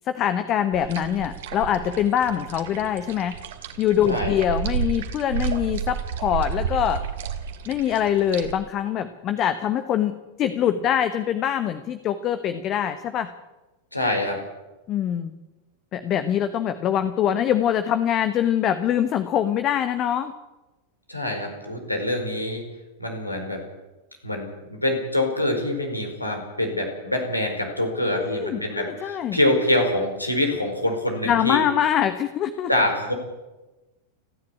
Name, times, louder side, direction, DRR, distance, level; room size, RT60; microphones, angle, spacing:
voice 1, 0.1-3.3 3.8-7.0 7.7-13.3 14.9-15.3 15.9-20.3 28.1-29.4 31.3-32.7, left 10 dB, 35° left, 11 dB, 1.2 m, -24 dB
sound 1, 0.7-8.5, right 7 dB, 55° right, 2.3 m, -31 dB
voice 2, 4.1-4.4 13.9-14.4 21.1-22.7 23.0-23.6 24.2-31.6 32.7-33.1, left 1 dB, 85° left, 3 dB, 4.9 m, -25 dB
30.0 x 11.0 x 8.6 m, 1.1 s
figure-of-eight pair, 90°, 0 cm